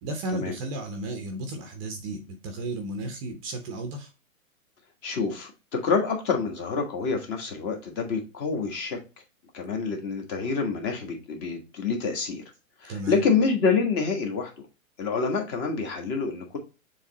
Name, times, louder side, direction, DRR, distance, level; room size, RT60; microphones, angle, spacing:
voice 1, 0.0-4.1 12.9-13.2, right 1 dB, 25° right, 0.7 m, -33 dB
voice 2, 5.0-9.0 9.5-12.4 12.8-14.5 15.0-16.6, left 5 dB, 25° left, 1.6 m, -27 dB
7.1 x 3.3 x 4.0 m
hypercardioid pair, 150°, 42 cm